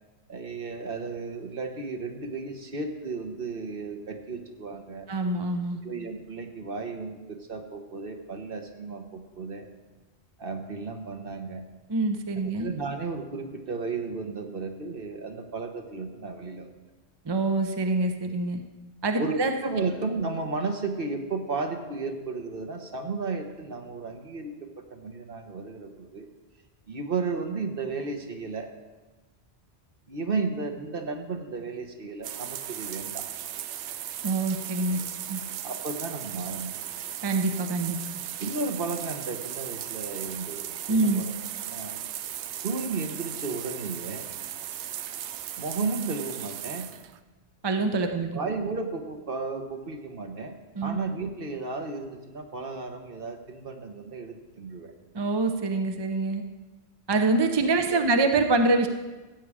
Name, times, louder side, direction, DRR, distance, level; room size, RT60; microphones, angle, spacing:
voice 1, 0.3-5.1 5.8-9.7 10.4-11.6 12.4-16.7 19.2-26.3 26.9-28.7 30.1-33.3 35.6-36.8 38.4-41.3 41.6-42.0 42.6-44.2 45.6-46.9 48.1-50.6 50.8-54.9 57.9-58.0, right 4 dB, 55° right, 4 dB, 1.4 m, -34 dB
voice 2, 5.1-5.8 11.9-12.7 17.2-18.6 19.0-19.5 34.2-35.0 35.3-35.4 37.2-38.0 40.9-41.2 47.6-48.3 50.8-51.0 55.1-56.4 57.1-58.9, right 3 dB, 25° right, 6 dB, 0.6 m, -25 dB
sound 1, 32.2-47.2, right 11 dB, 85° right, 0.9 m, -37 dB
15.0 x 8.3 x 4.9 m, 1.2 s
omnidirectional pair, 1.1 m